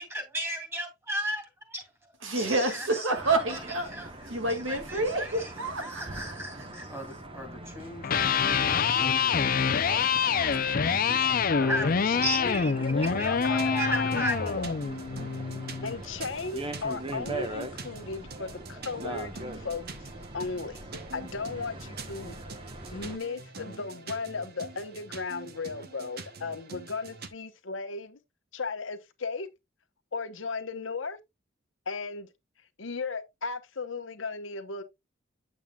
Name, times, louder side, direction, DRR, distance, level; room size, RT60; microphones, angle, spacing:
voice 1, 0.0-1.4 1.7-1.8 2.4-2.8 3.9-4.1 4.7-5.5 5.8-11.3 11.6-14.6, equal, 15° right, 2.7 m, -36 dB
voice 2, 2.2-6.7, right 2 dB, 85° right, 2.1 m, -29 dB
sound 1, 3.2-23.2, right 1 dB, 30° right, 1.1 m, -42 dB
Electric guitar, 7.9-16.0, left 6 dB, 50° left, 0.6 m, -26 dB
voice 3, 11.5-11.8 12.0-14.7 15.8-20.8 21.1-22.3 22.9-28.2 28.5-29.5 30.1-31.2 31.9-32.3 32.8-34.8, left 4 dB, 80° left, 1.0 m, -36 dB
sound 2, 13.0-27.3, right 3 dB, 55° right, 1.0 m, -45 dB
8.9 x 7.2 x 2.3 m
head